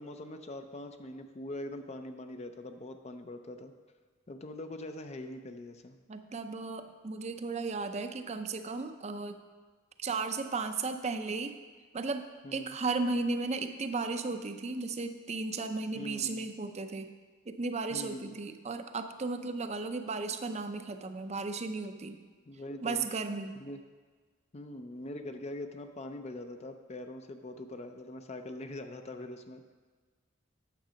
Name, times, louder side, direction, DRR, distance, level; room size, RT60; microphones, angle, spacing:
voice 1, 0.0-3.7 4.3-6.0 12.4-12.8 15.9-16.5 17.9-18.3 22.5-23.0 23.6-23.8 24.5-29.7, left 1 dB, 35° left, 7 dB, 0.5 m, -43 dB
voice 2, 6.1-9.4 10.0-11.5 11.9-17.1 17.5-22.2 22.8-23.6, right 3 dB, 35° right, 8 dB, 0.5 m, -35 dB
9.1 x 7.1 x 5.1 m, 1.4 s
head